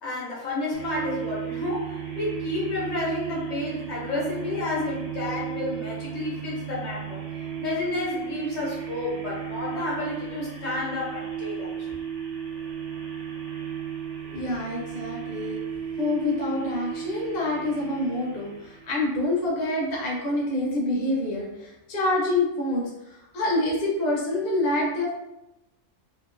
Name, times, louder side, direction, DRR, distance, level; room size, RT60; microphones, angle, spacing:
voice 1, 0.0-7.2 7.6-11.9, left 2 dB, 60° left, -5 dB, 1.2 m, -31 dB
sound 1, 0.7-19.0, right 8 dB, 90° right, 1.1 m, -34 dB
voice 2, 14.3-15.6 16.0-25.1, left 2 dB, 40° left, -3 dB, 0.7 m, -27 dB
2.9 x 2.4 x 2.5 m, 0.95 s
omnidirectional pair, 1.3 m